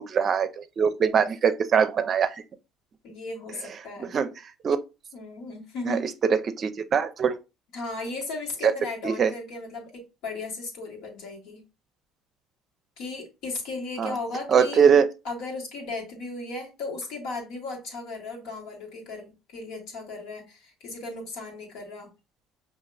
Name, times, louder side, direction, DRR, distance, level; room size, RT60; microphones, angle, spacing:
voice 1, 0.0-2.3 4.0-4.3 4.6-4.8 5.9-6.0 6.3-7.4 8.6-8.7 9.0-9.3 14.0-14.1 14.5-15.1, right 7 dB, 45° right, 0.5 m, -22 dB
voice 2, 3.0-4.1 5.1-6.1 7.7-11.7 13.0-14.8 15.2-22.1, left 3 dB, 70° left, 1.6 m, -36 dB
5.7 x 2.8 x 2.3 m
hypercardioid pair, 75°, 0 cm